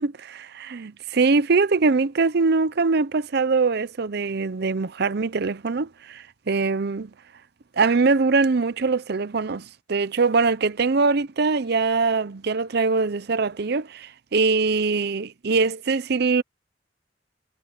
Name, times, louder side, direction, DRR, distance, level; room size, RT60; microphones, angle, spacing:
voice 1, 0.0-7.1 7.8-16.4, right 4 dB, 60° right, 0.6 m, -22 dB
head